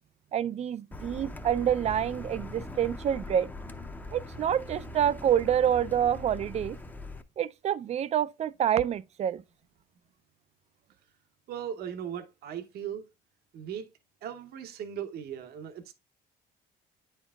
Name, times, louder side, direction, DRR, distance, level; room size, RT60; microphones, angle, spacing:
voice 1, 0.3-3.5 4.1-6.8 7.4-9.4, right 9 dB, 40° right, 0.4 m, -27 dB
Car, 0.9-7.2, left 2 dB, 10° left, 0.6 m, -41 dB
voice 2, 11.5-13.0 13.5-13.9 14.2-15.9, right 9 dB, 70° right, 0.8 m, -38 dB
9.2 x 4.5 x 2.3 m
cardioid pair, 110°, 17 cm